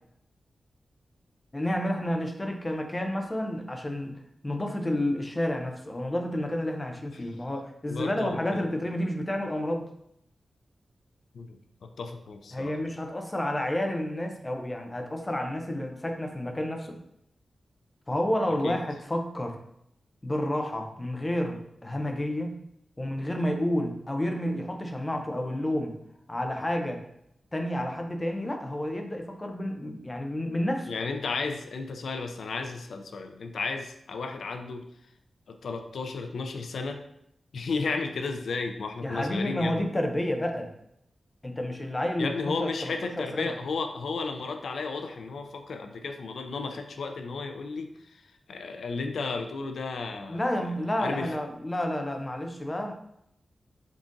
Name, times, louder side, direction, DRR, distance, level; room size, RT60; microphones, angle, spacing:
voice 1, 1.5-4.2 4.4-9.9 12.5-17.0 18.1-19.6 20.2-22.6 23.0-26.0 26.3-27.0 27.5-30.9 39.0-40.7 41.4-43.5 50.3-52.9, left 1 dB, 20° left, 3 dB, 0.4 m, -30 dB
voice 2, 7.9-8.8 11.3-12.7 18.6-18.8 30.9-34.8 35.5-37.0 37.5-39.9 42.2-50.4 51.0-51.4, left 4 dB, 85° left, 5 dB, 0.4 m, -33 dB
3.9 x 3.6 x 2.5 m, 0.76 s
wide cardioid pair, 160°, 0 cm